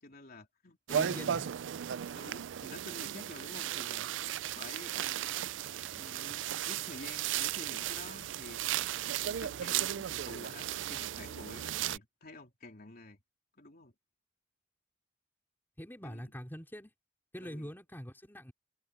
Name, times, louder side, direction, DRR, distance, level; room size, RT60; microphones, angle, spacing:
voice 1, 0.0-1.4 2.1-4.3 4.5-5.2 5.9-13.2 13.6-13.9 16.0-16.3 17.4-17.7, left 2 dB, 50° left, 3.5 m, -50 dB
voice 2, 0.9-1.5 15.8-16.9 17.3-18.5, equal, 10° left, 4.6 m, -44 dB
sound 1, 0.9-12.0, right 11 dB, 75° right, 0.4 m, -35 dB
head